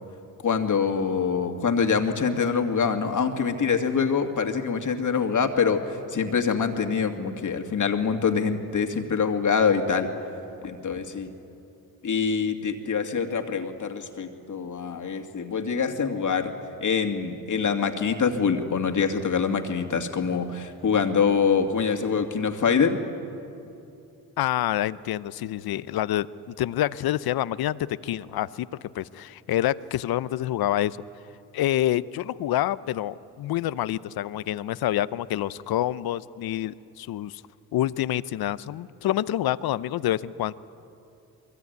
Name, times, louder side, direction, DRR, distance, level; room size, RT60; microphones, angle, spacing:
voice 1, 0.4-10.1 10.6-11.3 12.0-16.5 16.8-23.0, left 6 dB, 50° left, 5 dB, 2.4 m, -25 dB
voice 2, 24.4-28.7 28.9-31.0 31.5-37.4 37.7-40.5, left 13 dB, 65° left, 17 dB, 0.8 m, -27 dB
23.0 x 22.5 x 9.4 m, 2.8 s
supercardioid pair, 65°, 39 cm